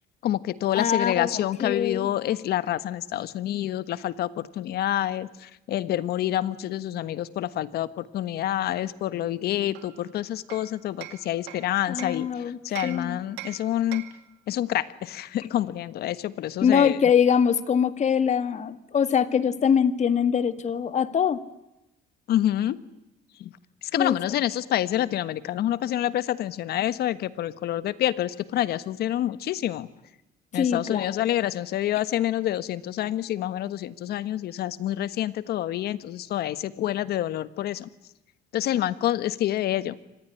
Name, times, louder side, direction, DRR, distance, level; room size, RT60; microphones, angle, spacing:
voice 1, 0.2-12.3 12.6-14.1 14.5-17.0 22.3-22.8 23.4-23.5 23.9-29.9 30.5-37.9 38.5-39.9, left 12 dB, 70° left, 15 dB, 1.5 m, -27 dB
voice 2, 0.7-2.1 11.9-13.2 16.6-21.4 24.0-24.4 30.5-31.2, left 7 dB, 45° left, 13 dB, 1.9 m, -23 dB
Hammer, 9.7-12.3 12.8-14.3, right 15 dB, 90° right, 2.3 m, -42 dB
25.5 x 19.5 x 10.0 m, 0.94 s
cardioid pair, 110°, 17 cm